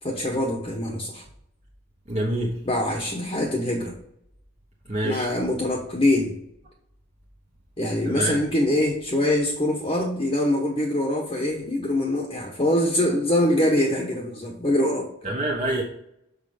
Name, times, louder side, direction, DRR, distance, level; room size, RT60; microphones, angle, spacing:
voice 1, 0.0-1.2 2.6-3.9 5.0-6.4 7.8-15.1, left 1 dB, 25° left, -1 dB, 1.1 m, -24 dB
voice 2, 2.1-2.5 4.9-5.3 8.0-8.4 15.2-15.8, right 1 dB, 30° right, -2 dB, 1.1 m, -26 dB
6.5 x 5.2 x 5.1 m, 0.74 s
head